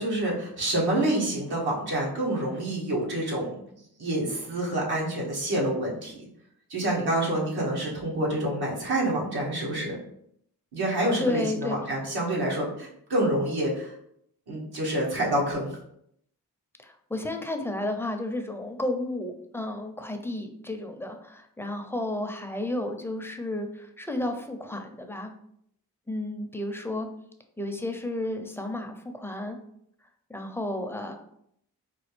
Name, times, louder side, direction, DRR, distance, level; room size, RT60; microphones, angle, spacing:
voice 1, 0.0-3.5 4.0-6.3 6.7-10.0 10.7-13.9 14.5-15.7, right 1 dB, 80° right, -4 dB, 1.3 m, -27 dB
voice 2, 11.2-11.8 16.8-25.3 26.1-27.1 27.6-29.6 30.3-31.1, left 1 dB, 5° left, 4 dB, 0.6 m, -32 dB
4.2 x 2.3 x 3.3 m, 0.71 s
cardioid pair, 50°, 38 cm